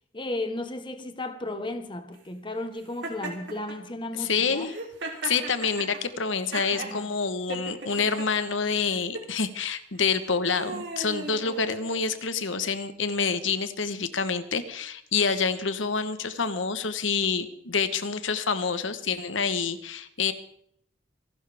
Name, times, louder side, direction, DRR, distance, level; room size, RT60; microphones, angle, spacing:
voice 1, 0.1-4.7 6.7-7.1, left 2 dB, 25° left, 1.1 m, -34 dB
Laughter, 3.0-3.8 4.6-7.0 7.5-8.3 9.0-9.3 10.0-12.2, right 3 dB, 65° right, 3.4 m, -37 dB
voice 2, 4.1-4.8 5.2-20.3, left 5 dB, 80° left, 1.2 m, -27 dB
27.5 x 12.0 x 3.5 m
head